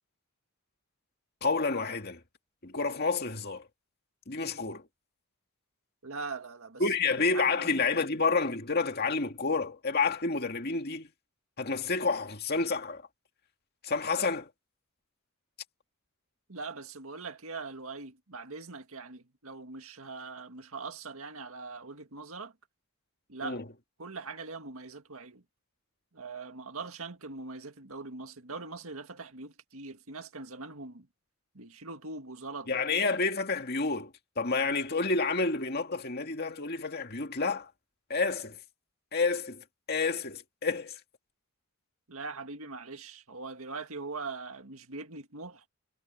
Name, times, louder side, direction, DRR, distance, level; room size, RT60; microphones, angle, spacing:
voice 1, 1.4-2.2 2.6-3.7 4.3-4.8 6.8-11.1 11.6-13.0 13.8-14.5 23.4-23.7 32.7-37.7 38.1-38.6 39.1-41.0, left 4 dB, 45° left, 2.3 m, -29 dB
voice 2, 6.0-6.8 7.3-8.0 16.5-22.5 23.3-23.6 24.0-25.4 26.1-31.1 31.6-32.7 42.1-45.6, right 3 dB, 70° right, 1.9 m, -42 dB
head